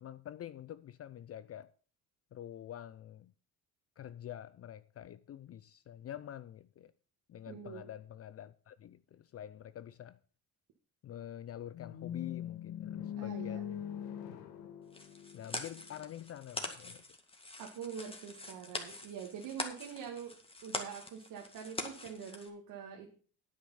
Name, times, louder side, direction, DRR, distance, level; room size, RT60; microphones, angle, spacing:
voice 1, 0.0-1.7 2.3-3.3 4.0-6.9 7.3-10.2 11.0-13.8 15.3-17.0, left 11 dB, 40° left, 0.5 m, -47 dB
voice 2, 7.5-7.9 13.2-13.7 17.6-20.3 20.6-23.1, right 7 dB, 75° right, 2.0 m, -45 dB
sound 1, 11.7-15.8, left 9 dB, 90° left, 1.4 m, -42 dB
sound 2, 14.9-22.5, left 2 dB, 15° left, 2.1 m, -44 dB
9.7 x 8.7 x 5.5 m
cardioid pair, 95°, 36 cm